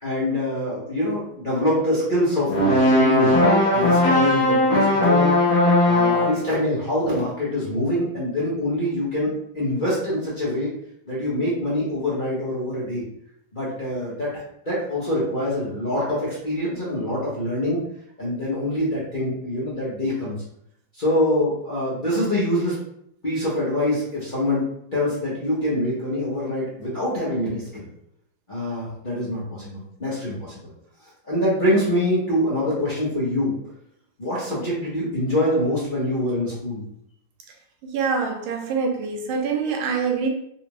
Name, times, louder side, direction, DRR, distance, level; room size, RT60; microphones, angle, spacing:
voice 1, 0.0-2.5 2.9-5.4 5.8-10.7 11.1-13.0 13.5-17.8 18.2-20.3 21.0-22.8 23.2-24.6 24.9-27.9 28.5-30.6 31.3-33.6 34.2-36.8, left 1 dB, 35° left, -9 dB, 0.9 m, -24 dB
sound 1, 2.5-6.5, left 1 dB, 50° left, 1.3 m, -18 dB
voice 2, 37.8-40.3, right 5 dB, 85° right, 3 dB, 1.4 m, -25 dB
4.1 x 2.5 x 3.0 m, 0.72 s
omnidirectional pair, 2.2 m